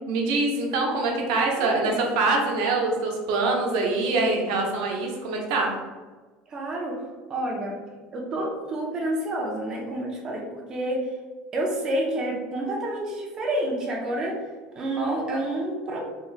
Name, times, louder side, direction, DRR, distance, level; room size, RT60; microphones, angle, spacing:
voice 1, 0.1-5.7, right 3 dB, 70° right, 0 dB, 0.8 m, -24 dB
voice 2, 1.6-2.0 6.5-7.0 7.3-7.8 8.1-11.0 11.5-14.4 14.8-16.0, right 1 dB, 20° right, -1 dB, 0.4 m, -29 dB
3.0 x 2.0 x 3.9 m, 1.3 s
cardioid pair, 180°, 3 cm